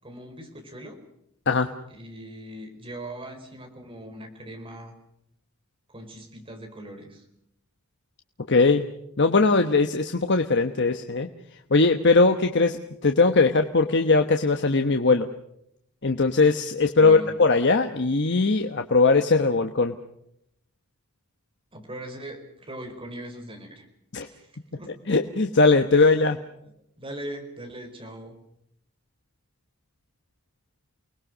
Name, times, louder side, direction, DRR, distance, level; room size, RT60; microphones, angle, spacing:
voice 1, 0.0-1.0 1.9-4.9 5.9-7.3 17.0-17.4 21.7-23.9 24.2-24.5 24.8-25.0 26.0-26.4 27.0-28.4, right 1 dB, 25° right, 4 dB, 4.8 m, -40 dB
voice 2, 8.5-8.9 9.2-11.3 11.7-15.3 16.0-19.9 24.1-24.3 25.1-26.4, left 3 dB, 50° left, 6 dB, 1.2 m, -20 dB
29.5 x 20.5 x 6.2 m, 0.77 s
head